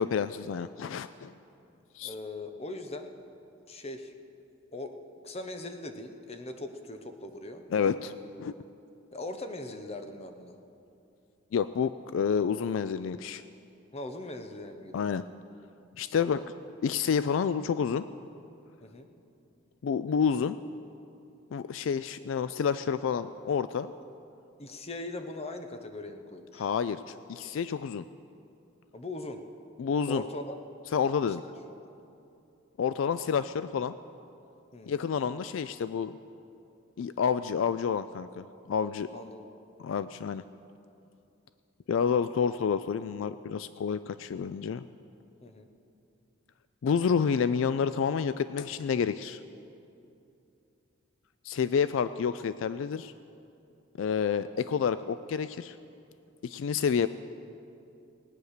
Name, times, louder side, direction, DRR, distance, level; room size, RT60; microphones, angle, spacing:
voice 1, 0.0-1.3 1.9-2.1 7.7-8.1 8.4-8.5 11.5-13.4 14.9-15.2 16.0-16.4 16.8-18.1 19.8-20.6 21.5-23.9 26.6-28.1 29.8-30.2 30.9-31.4 32.8-34.0 34.9-36.1 37.0-39.1 39.8-40.4 41.9-44.8 46.8-49.4 51.4-53.1 54.0-55.7 56.4-57.1, left 6 dB, 75° left, 13 dB, 0.3 m, -29 dB
voice 2, 2.0-3.1 3.7-4.1 4.7-5.0 5.2-7.6 9.1-10.5 13.9-15.1 16.2-16.5 18.8-19.1 24.6-26.7 28.9-29.4 30.1-30.6 34.7-35.0 39.1-39.5 45.4-45.7, left 2 dB, 30° left, 6 dB, 1.0 m, -40 dB
19.0 x 9.3 x 6.6 m, 2.7 s
head